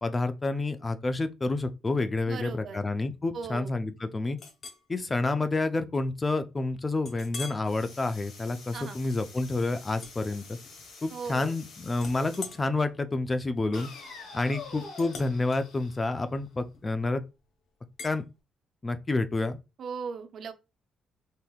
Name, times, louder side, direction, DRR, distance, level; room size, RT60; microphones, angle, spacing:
voice 1, 0.0-4.4 4.9-10.6 11.0-13.9 14.3-17.2 18.0-18.2 18.8-19.6, left 2 dB, 25° left, 0.4 m, -29 dB
voice 2, 2.3-2.8 3.3-3.7 8.7-9.0 11.1-11.5 19.8-20.5, right 5 dB, 60° right, 0.4 m, -37 dB
Chink clink, 4.4-4.9 5.4-5.6 6.0-6.1 7.0-7.7 8.2-8.5 9.9-10.9 11.2-11.6 11.9-17.1 18.0-18.2, left 4 dB, 60° left, 0.8 m, -45 dB
sound 1, 7.6-12.6 13.7-16.6, left 4 dB, 80° left, 1.1 m, -47 dB
3.5 x 2.7 x 2.3 m
cardioid pair, 90°, 0 cm